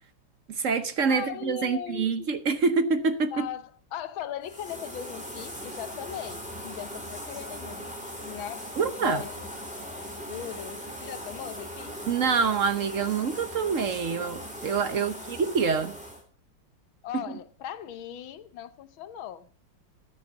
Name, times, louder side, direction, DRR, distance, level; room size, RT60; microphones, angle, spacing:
voice 1, 0.5-3.5 8.8-9.2 12.1-16.0, right 5 dB, 55° right, 0.9 m, -26 dB
voice 2, 1.1-2.3 3.3-8.0 8.2-9.5 10.1-12.1 14.9-15.4 17.0-19.6, left 10 dB, 80° left, 1.7 m, -39 dB
sound 1, 4.4-16.2, equal, 5° right, 2.9 m, -39 dB
14.0 x 9.6 x 4.0 m
omnidirectional pair, 2.2 m